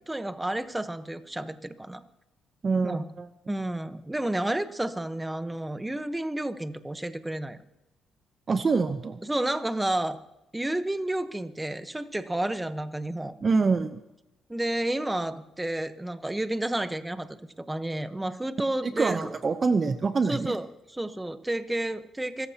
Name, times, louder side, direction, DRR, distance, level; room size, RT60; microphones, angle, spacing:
voice 1, 0.1-2.0 2.8-3.0 3.5-7.6 9.2-10.2 10.5-13.3 14.5-17.3 17.6-19.4 20.3-22.5, right 1 dB, 10° right, 10 dB, 1.0 m, -31 dB
voice 2, 2.6-3.3 8.5-9.2 13.4-14.0 18.8-20.6, right 4 dB, 35° right, 10 dB, 0.7 m, -25 dB
26.0 x 14.0 x 2.9 m, 0.91 s
cardioid pair, 90°, 0 cm